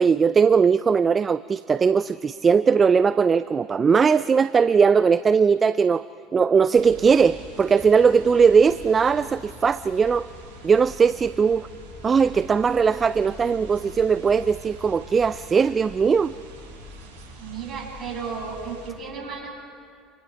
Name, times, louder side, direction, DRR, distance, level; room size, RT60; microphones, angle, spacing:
voice 1, 0.0-6.0 6.3-10.3 10.6-11.7 12.0-16.3, right 6 dB, 30° right, 15 dB, 0.5 m, -19 dB
sound 1, 6.8-18.9, equal, 75° right, 8.0 m, -43 dB
voice 2, 17.4-19.6, right 5 dB, 50° right, 1 dB, 6.9 m, -34 dB
29.5 x 27.5 x 4.6 m, 2.3 s
hypercardioid pair, 70°, 0 cm